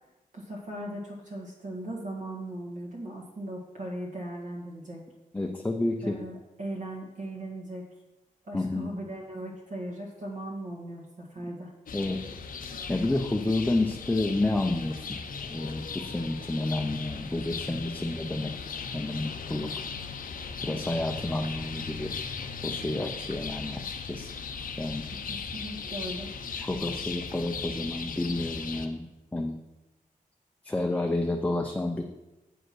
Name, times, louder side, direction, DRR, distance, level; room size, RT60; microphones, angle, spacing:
voice 1, 0.3-5.0 6.0-7.8 8.4-11.7 25.3-26.3, right 1 dB, 65° right, -4 dB, 1.8 m, -38 dB
voice 2, 5.3-6.2 8.5-8.9 11.9-12.2 12.9-15.2 15.5-19.7 20.6-22.1 22.6-24.3 24.8-25.1 26.5-29.1 29.3-29.6 30.6-32.0, left 2 dB, 10° left, 2 dB, 0.5 m, -30 dB
sound 1, 11.9-28.9, left 5 dB, 85° left, 0.7 m, -38 dB
7.8 x 5.2 x 6.1 m, 1.0 s
wide cardioid pair, 175°, 14 cm